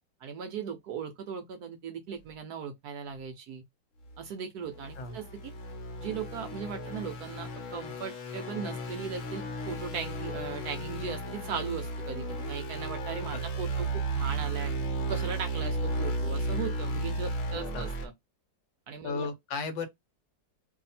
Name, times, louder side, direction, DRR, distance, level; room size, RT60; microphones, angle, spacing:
voice 1, 0.2-3.6 4.2-5.5 6.0-14.7 15.1-18.1 18.9-19.3, right 6 dB, 70° right, 0.9 m, -38 dB
sound 1, 4.0-4.2 4.7-18.1, right 2 dB, 55° left, 1.0 m, -34 dB
voice 2, 19.0-19.9, left 4 dB, 75° left, 1.4 m, -35 dB
2.7 x 2.7 x 4.0 m
omnidirectional pair, 2.0 m